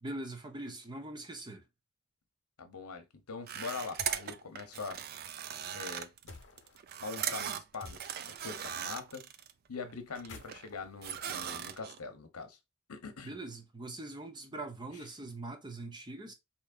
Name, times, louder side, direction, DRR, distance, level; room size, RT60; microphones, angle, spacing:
voice 1, 0.0-1.6 13.2-16.3, right 2 dB, 20° right, 0.7 m, -42 dB
voice 2, 2.6-5.0 5.7-6.1 7.0-9.3 9.7-12.6 12.9-13.4, left 4 dB, 85° left, 0.8 m, -43 dB
sound 1, 3.5-9.5 9.9-10.7 11.0-12.0, right 9 dB, 45° right, 0.4 m, -39 dB
sound 2, 4.0-4.4 6.3-6.8 7.8-8.4 10.1-12.0, left 3 dB, 55° left, 0.9 m, -52 dB
4.6 x 3.0 x 2.4 m
head